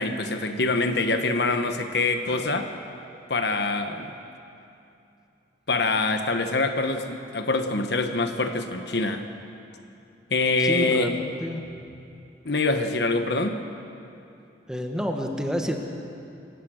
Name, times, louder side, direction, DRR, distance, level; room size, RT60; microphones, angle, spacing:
voice 1, 0.0-2.7 3.3-4.1 5.7-9.2 10.3-11.1 12.4-13.6, left 3 dB, 60° left, 6 dB, 1.2 m, -25 dB
voice 2, 10.6-12.0 14.7-15.8, equal, 5° right, 2 dB, 1.5 m, -29 dB
27.0 x 15.5 x 6.5 m, 2.7 s
head